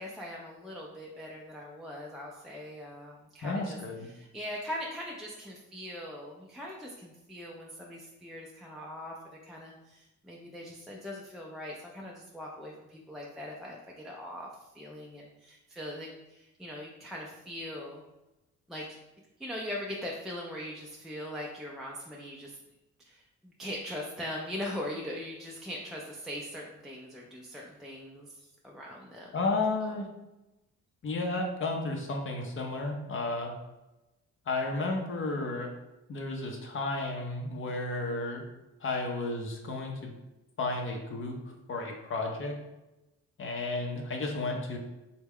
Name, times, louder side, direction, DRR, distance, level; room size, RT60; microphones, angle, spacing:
voice 1, 0.0-3.8 4.1-9.1 9.4-14.5 14.7-18.0 18.7-19.0 19.4-22.6 23.0-29.3, left 1 dB, ahead, -3 dB, 0.4 m, -41 dB
voice 2, 3.4-4.1 29.3-30.1 31.0-33.5 34.5-35.7 36.1-38.4 38.8-40.1 40.6-41.4 41.7-42.6 43.4-44.8, left 2 dB, 45° left, 1 dB, 0.6 m, -32 dB
3.3 x 2.2 x 3.5 m, 0.98 s
cardioid pair, 90°, 30 cm